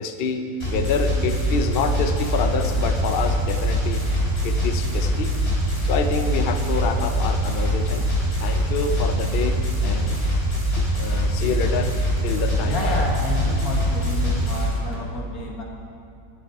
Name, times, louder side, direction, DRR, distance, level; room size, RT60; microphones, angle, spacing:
voice 1, 0.0-4.0 4.4-5.3 5.8-8.1 8.4-10.2 10.8-12.0 12.2-13.1, left 4 dB, 80° left, 7 dB, 0.5 m, -27 dB
sound 1, 0.6-14.6, equal, 35° left, 3.7 m, -23 dB
sound 2, 2.0-15.0, right 1 dB, 80° right, 2.2 m, -38 dB
voice 2, 12.6-15.6, left 3 dB, 55° left, -1 dB, 2.0 m, -29 dB
11.5 x 10.0 x 4.8 m, 2.6 s
omnidirectional pair, 1.9 m